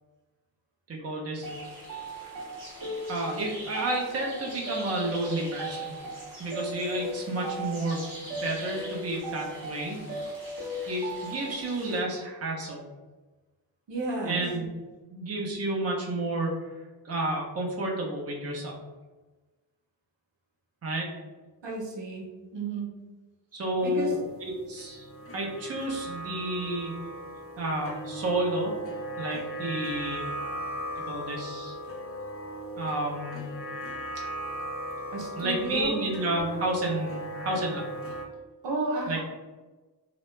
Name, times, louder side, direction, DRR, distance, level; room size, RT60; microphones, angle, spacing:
voice 1, 0.9-1.5 3.1-6.0 6.4-10.0 10.9-12.8 14.3-14.7 15.1-16.7 17.0-18.7 20.8-21.1 23.5-25.1 25.3-26.9 27.6-28.7 29.2-30.3 31.1-31.7 32.8-33.4 35.4-37.8 39.1-39.2, right 1 dB, 35° right, -1 dB, 0.6 m, -31 dB
sound 1, 1.4-12.0, right 1 dB, 50° right, 1.0 m, -37 dB
voice 2, 13.9-14.4 21.6-23.0 23.8-24.1 35.1-36.0 38.6-39.2, right 3 dB, 80° right, -2 dB, 0.9 m, -32 dB
sound 2, 23.8-38.2, right 1 dB, 35° left, 0.5 m, -38 dB
2.9 x 2.1 x 3.1 m, 1.2 s
wide cardioid pair, 105°, 43 cm